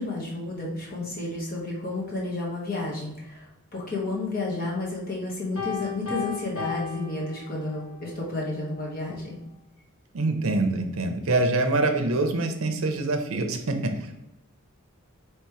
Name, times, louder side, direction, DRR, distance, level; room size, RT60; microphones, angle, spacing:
voice 1, 0.0-3.4 3.7-9.4, left 2 dB, 40° left, -4 dB, 1.2 m, -31 dB
Piano, 5.6-7.9, left 7 dB, 75° left, 1.4 m, -35 dB
voice 2, 10.1-14.2, right 2 dB, 65° right, 6 dB, 0.6 m, -25 dB
3.1 x 3.0 x 4.6 m, 0.90 s
head